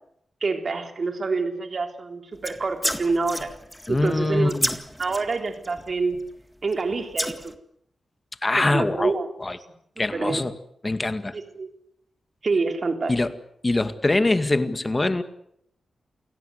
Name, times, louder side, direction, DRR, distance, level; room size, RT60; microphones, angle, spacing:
voice 1, 0.4-3.5 3.9-4.5 5.0-6.2 6.6-7.5 8.6-9.3 10.0-10.4 11.3-11.7 12.4-13.1, right 4 dB, 55° right, 6 dB, 3.6 m, -27 dB
sound 1, 2.3-6.4 6.7-7.6, equal, 5° left, 2.0 m, -32 dB
voice 2, 3.9-4.7 8.4-9.6 10.0-10.5 10.8-11.4 13.1-13.3 13.6-15.2, left 2 dB, 30° left, 11 dB, 2.1 m, -23 dB
28.5 x 17.0 x 8.1 m, 0.74 s
cardioid pair, 55°, 0 cm